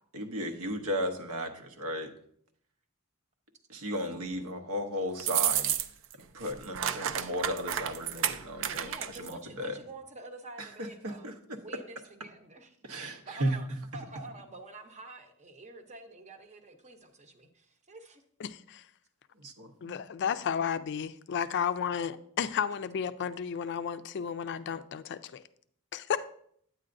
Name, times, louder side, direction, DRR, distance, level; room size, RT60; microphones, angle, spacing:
voice 1, 0.1-2.1 3.7-5.7 6.3-9.8 10.6-11.6 12.8-13.6 19.3-20.0, equal, 85° right, 0.9 m, -35 dB
sound 1, 5.2-6.1 6.4-9.3, right 10 dB, 60° right, 0.4 m, -31 dB
voice 2, 8.6-11.3 11.6-12.7 13.1-13.7 13.9-18.2, right 2 dB, 35° right, 0.8 m, -47 dB
voice 3, 18.4-18.9 19.8-25.4 25.9-26.3, left 7 dB, 55° left, 0.4 m, -33 dB
9.0 x 8.6 x 2.6 m
head